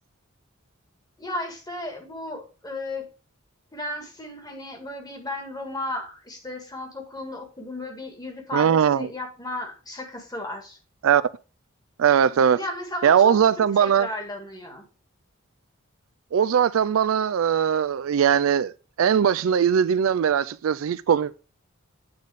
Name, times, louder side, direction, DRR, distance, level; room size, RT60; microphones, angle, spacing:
voice 1, 1.2-3.1 3.7-10.8 12.3-13.4 13.8-14.8, left 1 dB, 20° left, 1.7 m, -34 dB
voice 2, 8.5-9.1 11.0-11.2 12.0-12.6 13.0-14.1 16.3-18.7 19.0-21.3, right 8 dB, 75° right, 0.4 m, -20 dB
8.6 x 4.1 x 4.8 m
head